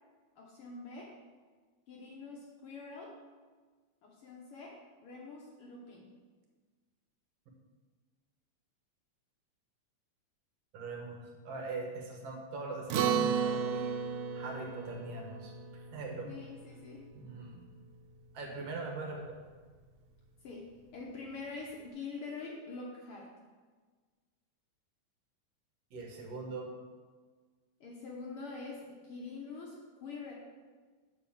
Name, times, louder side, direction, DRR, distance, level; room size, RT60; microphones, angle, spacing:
voice 1, 0.3-1.1 1.9-3.1 4.0-4.7 5.0-6.1 16.2-17.0 20.4-20.7 20.9-23.3 27.8-30.3, left 4 dB, 60° left, -2 dB, 1.7 m, -45 dB
voice 2, 10.7-13.9 14.3-15.5 15.9-16.3 17.1-17.7 18.3-19.4 25.9-26.7, right 3 dB, 65° right, 1 dB, 1.9 m, -41 dB
Acoustic guitar, 12.9-17.6, right 7 dB, 85° right, 2.0 m, -34 dB
7.0 x 5.3 x 7.1 m, 1.4 s
omnidirectional pair, 3.3 m